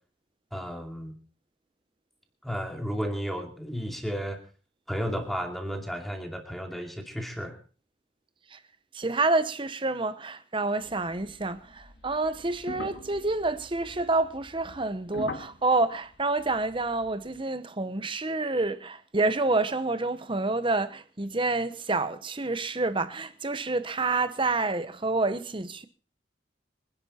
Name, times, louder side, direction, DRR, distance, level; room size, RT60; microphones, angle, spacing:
voice 1, 0.5-1.1 2.4-4.4 4.9-7.6, equal, ahead, 2.5 m, -33 dB
voice 2, 8.9-25.9, right 3 dB, 25° right, 0.9 m, -28 dB
sound 1, 10.8-17.4, left 2 dB, 65° left, 1.9 m, -44 dB
26.0 x 10.5 x 4.3 m
head